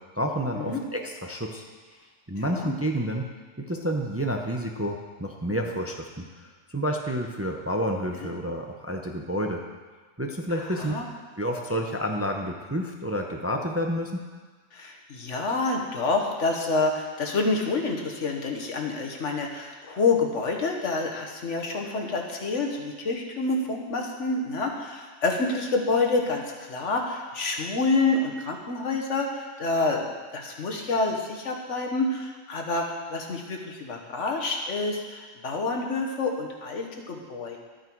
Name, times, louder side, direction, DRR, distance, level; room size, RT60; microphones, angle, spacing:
voice 1, 0.1-1.6 2.3-3.3 3.6-6.1 6.4-9.6 10.2-11.0 11.4-14.2, equal, 15° right, 2 dB, 0.6 m, -29 dB
voice 2, 2.4-2.7 8.2-8.3 10.6-11.1 14.7-37.6, left 3 dB, 75° left, 1 dB, 1.6 m, -28 dB
12.5 x 9.1 x 4.6 m, 1.4 s
omnidirectional pair, 1.3 m